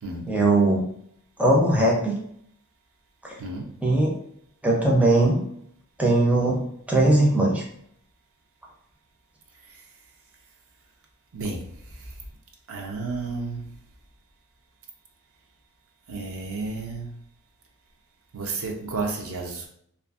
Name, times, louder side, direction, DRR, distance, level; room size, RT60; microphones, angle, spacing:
voice 1, 0.3-0.8 1.4-2.2 3.8-4.1 4.6-5.4 6.0-7.6, right 2 dB, 5° right, -3 dB, 0.4 m, -20 dB
voice 2, 3.4-3.7 11.3-11.6 12.7-13.7 16.1-17.1 18.3-19.7, right 3 dB, 65° right, 1 dB, 0.5 m, -31 dB
2.5 x 2.5 x 2.3 m, 0.68 s
head